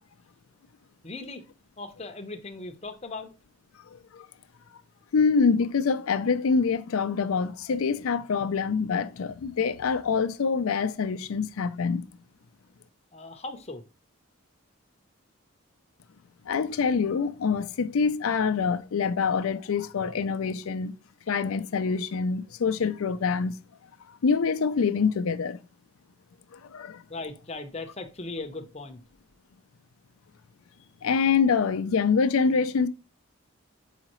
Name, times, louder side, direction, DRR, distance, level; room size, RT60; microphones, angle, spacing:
voice 1, 1.0-1.4 1.8-3.3 13.1-13.8 27.1-29.0, left 3 dB, 30° left, 0.7 m, -38 dB
voice 2, 5.1-12.0 16.5-20.9 21.3-23.6 24.1-25.6 26.5-27.0 31.0-32.9, left 5 dB, 85° left, 0.4 m, -25 dB
6.4 x 4.9 x 3.0 m
head